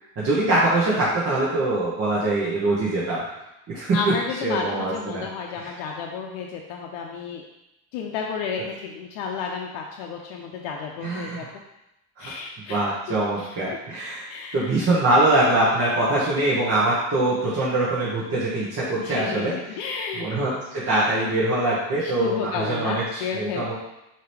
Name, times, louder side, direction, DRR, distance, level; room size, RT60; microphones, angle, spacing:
voice 1, 0.2-3.2 3.7-4.1 4.4-5.2 5.6-5.7 11.0-11.5 12.2-12.3 12.7-14.3 14.5-19.5 20.2-23.7, right 2 dB, 35° right, -8 dB, 1.0 m, -23 dB
voice 2, 3.9-7.4 7.9-11.5 12.2-12.8 13.4-13.6 14.3-14.7 19.0-20.4 22.0-23.7, left 5 dB, 75° left, 1 dB, 0.6 m, -32 dB
4.7 x 2.9 x 3.1 m, 0.90 s
cardioid pair, 130°, 46 cm